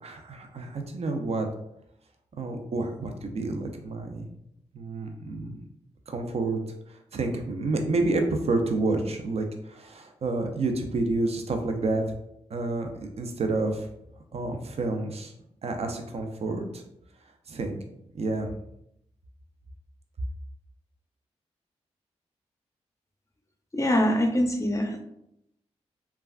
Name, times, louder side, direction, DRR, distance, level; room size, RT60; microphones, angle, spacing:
voice 1, 0.0-1.5 2.4-4.3 4.7-5.6 6.1-6.6 6.9-12.0 12.5-13.9 14.3-15.3 15.6-16.8 17.5-17.8 18.1-18.5, right 2 dB, 55° right, 5 dB, 0.5 m, -29 dB
voice 2, 23.7-25.0, equal, 25° left, 3 dB, 0.6 m, -24 dB
3.3 x 2.3 x 2.3 m, 0.77 s
cardioid pair, 55°, 12 cm